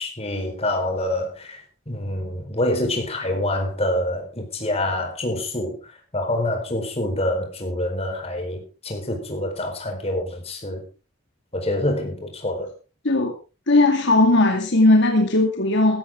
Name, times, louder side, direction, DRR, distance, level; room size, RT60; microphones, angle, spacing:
voice 1, 0.0-10.9 11.5-12.7, left 1 dB, 30° left, 4.4 m, -26 dB
voice 2, 13.7-16.0, left 2 dB, 60° left, 2.2 m, -17 dB
15.5 x 13.5 x 3.7 m
head